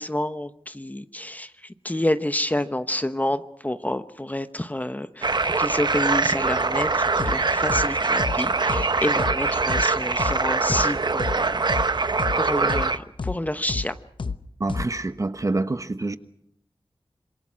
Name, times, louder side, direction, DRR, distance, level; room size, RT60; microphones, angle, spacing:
voice 1, 0.0-12.1 12.4-14.0, left 1 dB, 15° left, 0.9 m, -29 dB
sound 1, 5.2-13.0, right 3 dB, 55° right, 0.9 m, -23 dB
sound 2, 7.2-7.4 7.7-7.9 8.2-8.4 8.7-8.9 9.2-9.4 9.7-9.9 10.2-10.4 10.7-10.9 11.2-11.4 11.7-11.9 12.2-12.4 12.7-12.9 13.2-13.4 13.7-13.9 14.2-14.4 14.7-14.9, left 4 dB, 65° left, 0.9 m, -29 dB
voice 2, 14.6-16.2, right 2 dB, 35° right, 1.1 m, -26 dB
26.5 x 22.5 x 6.3 m
wide cardioid pair, 85°, 9 cm